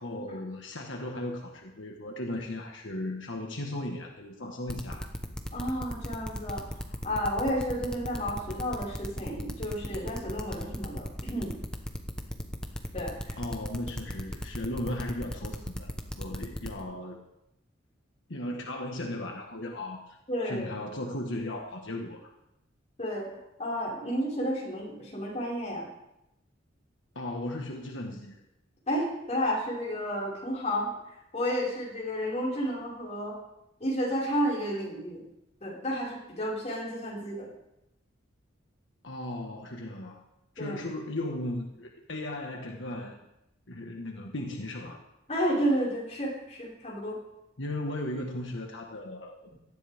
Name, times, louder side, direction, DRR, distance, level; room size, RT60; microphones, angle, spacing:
voice 1, 0.0-5.1 13.4-17.2 18.3-20.2 20.4-22.3 27.1-28.4 39.0-40.2 40.5-43.1 43.7-45.0 47.6-49.4, left 1 dB, 75° left, 1 dB, 1.5 m, -36 dB
sound 1, 4.7-16.8, equal, 5° left, 1.1 m, -36 dB
voice 2, 5.5-6.6 7.0-11.5 12.9-13.3 20.3-20.7 23.0-23.3 23.6-25.9 28.9-33.3 33.8-35.2 35.6-37.5 40.6-40.8 45.3-47.2, equal, 35° left, -5 dB, 5.3 m, -31 dB
18.5 x 13.5 x 3.6 m, 0.87 s
head